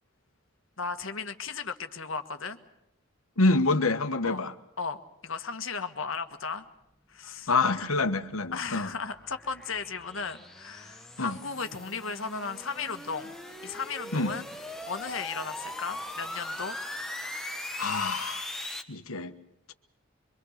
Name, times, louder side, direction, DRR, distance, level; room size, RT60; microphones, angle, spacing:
voice 1, 0.8-2.6 4.2-4.4 4.8-6.6 7.1-7.5 8.5-13.3 13.6-14.4 14.8-16.8, left 5 dB, 70° left, 8 dB, 1.6 m, -35 dB
voice 2, 3.4-4.5 7.5-8.9 11.2-11.4 14.1-14.3 17.8-18.5 18.9-19.3, left 3 dB, 85° left, 9 dB, 1.4 m, -26 dB
sound 1, 7.8-18.8, left 1 dB, ahead, 1.2 m, -40 dB
24.5 x 24.5 x 6.6 m, 0.82 s
head